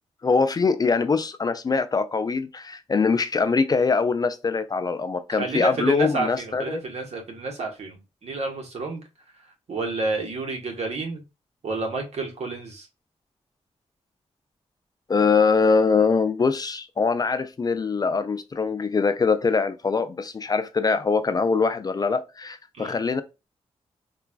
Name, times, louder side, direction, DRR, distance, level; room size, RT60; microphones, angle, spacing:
voice 1, 0.2-6.8 15.1-23.2, left 4 dB, 35° left, 0.3 m, -23 dB
voice 2, 5.3-9.0 9.7-11.2 11.6-12.9 22.8-23.0, right 3 dB, 65° right, 1.1 m, -30 dB
3.8 x 2.3 x 2.3 m
wide cardioid pair, 95°, 12 cm